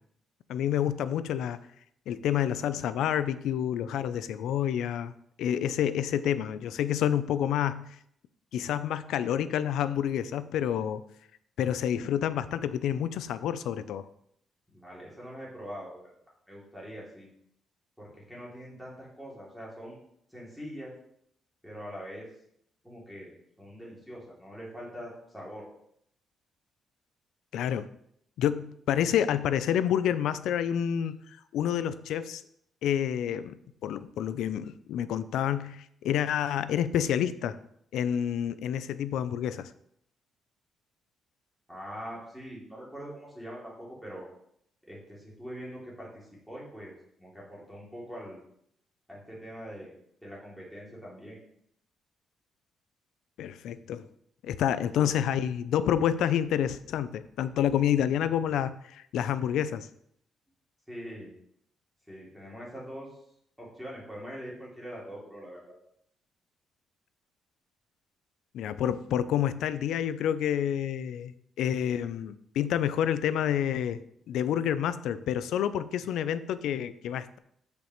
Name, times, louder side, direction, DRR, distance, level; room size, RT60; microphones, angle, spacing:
voice 1, 0.5-1.6 2.1-5.1 5.4-7.9 8.5-11.0 11.6-14.1 27.5-27.9 28.4-31.2 31.5-32.4 32.8-37.6 37.9-39.7 53.4-54.0 54.4-59.9 68.5-74.0 74.3-77.4, left 10 dB, 85° left, 14 dB, 0.5 m, -28 dB
voice 2, 14.7-16.1 16.5-17.3 18.0-20.0 20.3-20.9 21.6-22.3 22.8-23.3 23.6-25.7 41.7-44.3 44.8-48.4 49.1-49.9 50.2-51.4 55.0-55.1 60.9-61.3 62.1-63.2 63.6-65.8, equal, ahead, -6 dB, 2.9 m, -43 dB
13.5 x 5.2 x 3.1 m, 0.71 s
cardioid pair, 155°, 0 cm